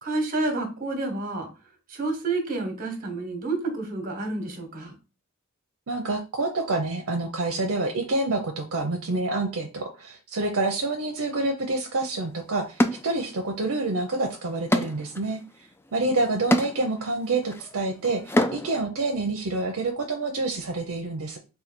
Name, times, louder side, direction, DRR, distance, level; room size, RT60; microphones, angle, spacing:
voice 1, 0.0-1.5 1.9-4.9, right 2 dB, 40° right, 4 dB, 1.2 m, -29 dB
voice 2, 5.9-15.4 15.9-21.4, right 2 dB, 70° right, 2 dB, 0.7 m, -27 dB
sound 1, 12.0-12.1 12.8-13.7 14.0-18.9, left 1 dB, 10° left, 0.3 m, -28 dB
3.9 x 2.3 x 4.4 m, 0.30 s
head